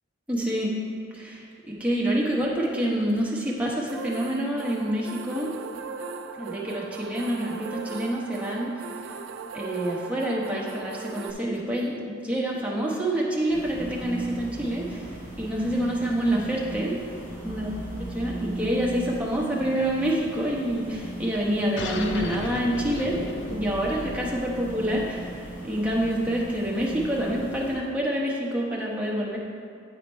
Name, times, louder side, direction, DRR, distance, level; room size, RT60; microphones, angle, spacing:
voice 1, 0.3-0.7 1.1-5.5 6.3-9.2 9.5-16.9 17.4-17.7 18.0-23.2 23.5-29.4, right 1 dB, 5° right, -4 dB, 1.0 m, -27 dB
sound 1, 3.9-11.3, right 5 dB, 75° right, 0.4 m, -38 dB
sound 2, 13.5-27.8, right 1 dB, 40° left, 2.1 m, -38 dB
sound 3, 21.8-26.8, left 3 dB, 65° left, 0.5 m, -37 dB
9.2 x 4.9 x 4.4 m, 2.4 s
head